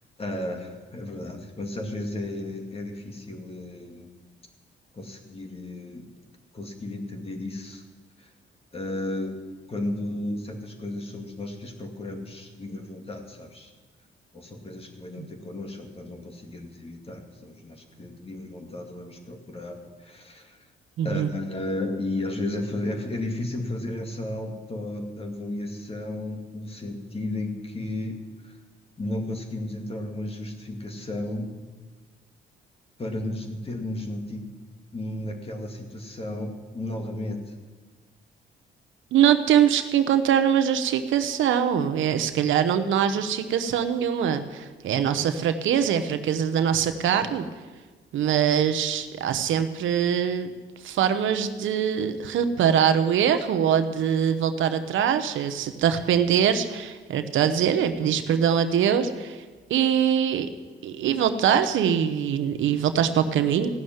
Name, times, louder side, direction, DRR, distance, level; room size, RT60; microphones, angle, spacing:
voice 1, 0.2-4.1 4.9-6.1 6.5-7.8 8.2-8.3 8.7-13.7 14.3-20.6 21.0-28.6 29.0-31.5 33.0-34.5 34.9-37.4, left 1 dB, 30° left, 3 dB, 2.3 m, -34 dB
voice 2, 21.0-21.3 39.1-47.5 48.1-50.5 50.8-59.4 59.7-60.5 60.8-63.7, right 8 dB, 75° right, 9 dB, 1.0 m, -23 dB
16.0 x 6.5 x 9.4 m, 1.3 s
cardioid pair, 90°, 20 cm